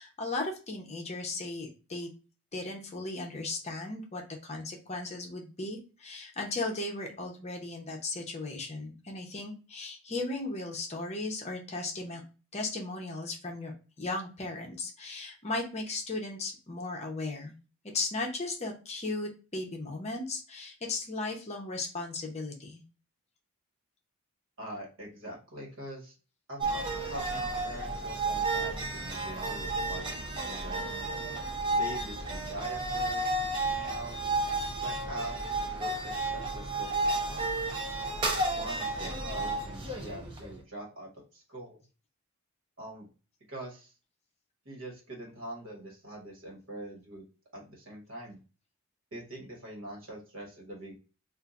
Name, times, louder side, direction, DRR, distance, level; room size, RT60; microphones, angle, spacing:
voice 1, 0.0-2.1 2.5-12.2 12.5-13.7 14.0-17.5 17.9-22.8, left 2 dB, 30° left, 1 dB, 0.7 m, -36 dB
voice 2, 24.6-26.1 26.5-30.9 31.8-33.4 33.7-34.1 34.8-37.4 38.6-41.8 42.8-43.1 43.5-43.9 44.6-47.2 47.5-48.4 49.1-50.9, right 1 dB, 60° right, -2 dB, 1.4 m, -43 dB
sound 1, 26.6-40.6, right 2 dB, 20° right, 0.6 m, -32 dB
2.7 x 2.5 x 3.5 m, 0.34 s
head